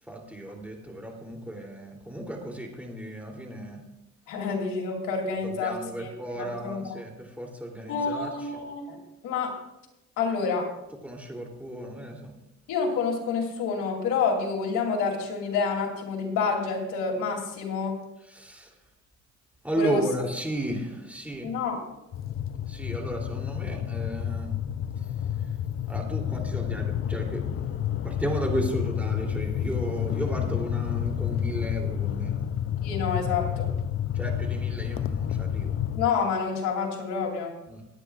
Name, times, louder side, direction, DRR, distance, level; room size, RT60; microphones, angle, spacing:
voice 1, 0.0-3.8 5.4-8.5 11.0-12.3 18.2-18.8 19.6-21.5 22.7-24.6 25.0-25.1 25.4-25.6 25.9-32.4 34.1-35.8 37.7-37.9, right 1 dB, 5° right, 0 dB, 3.0 m, -34 dB
voice 2, 4.3-6.9 7.9-9.0 9.2-9.6 10.2-10.7 12.7-18.0 19.8-20.0 21.4-21.8 32.8-33.7 35.9-37.5, left 5 dB, 90° left, -1 dB, 3.0 m, -28 dB
sound 1, 22.1-36.1, left 9 dB, 45° left, 0.5 m, -30 dB
22.5 x 9.7 x 2.4 m, 0.93 s
cardioid pair, 90°, 30 cm